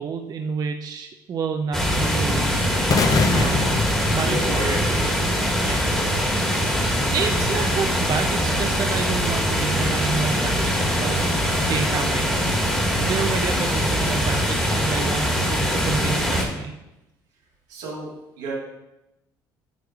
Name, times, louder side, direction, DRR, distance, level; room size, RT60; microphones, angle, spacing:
voice 1, 0.0-2.5 3.3-3.7 4.1-4.8 5.6-5.9 7.1-12.4 13.1-16.7, right 5 dB, 45° right, 5 dB, 0.5 m, -29 dB
sound 1, 1.7-16.4, equal, 5° left, 1.5 m, -22 dB
sound 2, 2.9-5.0, left 4 dB, 40° left, 0.6 m, -23 dB
voice 2, 4.1-5.5 17.7-18.1 18.4-18.5, right 2 dB, 85° right, -4 dB, 1.9 m, -31 dB
9.1 x 4.7 x 2.3 m, 0.95 s
hypercardioid pair, 65°, 9 cm